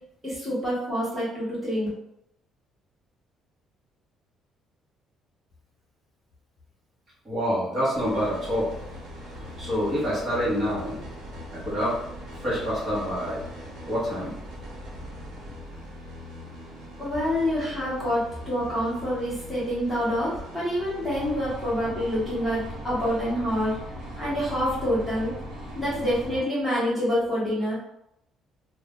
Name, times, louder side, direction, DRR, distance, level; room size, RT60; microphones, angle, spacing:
voice 1, 0.2-1.9 17.0-23.8 24.2-25.3 25.7-27.7, equal, ahead, -10 dB, 1.2 m, -27 dB
voice 2, 7.2-8.8 9.4-11.0 11.5-12.0 12.3-13.4 13.9-14.3, equal, 25° right, -9 dB, 1.1 m, -27 dB
sound 1, 7.9-26.4, equal, 70° right, 0.9 m, -40 dB
2.6 x 2.2 x 3.6 m, 0.80 s
cardioid pair, 170°, 0 cm